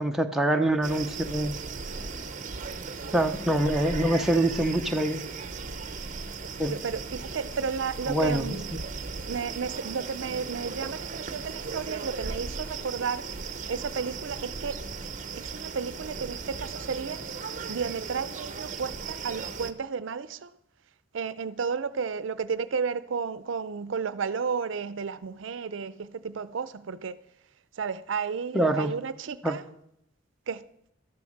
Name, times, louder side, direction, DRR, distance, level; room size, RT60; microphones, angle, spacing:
voice 1, 0.0-1.5 3.1-5.2 6.6-6.8 8.1-8.8 28.5-28.9 29.4-29.6, right 1 dB, ahead, 0.7 m, -25 dB
sound 1, 0.8-19.7, right 4 dB, 40° right, 0.8 m, -37 dB
voice 2, 6.6-8.7 9.3-13.2 13.7-14.8 15.3-17.2 17.7-20.5 21.1-27.2 27.8-29.6 30.5-30.6, right 5 dB, 70° right, 0.5 m, -33 dB
12.5 x 6.9 x 6.4 m
head